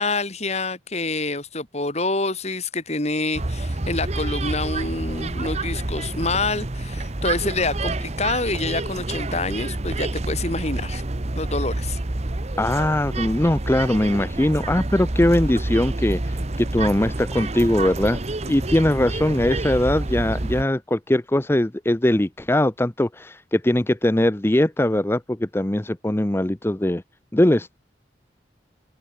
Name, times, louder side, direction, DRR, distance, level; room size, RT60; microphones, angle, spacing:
voice 1, 0.0-11.0 11.4-12.0, left 3 dB, 35° left, 3.6 m, -27 dB
sound 1, 3.3-20.6, right 2 dB, 35° right, 1.0 m, -28 dB
voice 2, 12.6-18.2 18.5-27.0 27.3-27.8, left 1 dB, 15° left, 0.6 m, -21 dB
head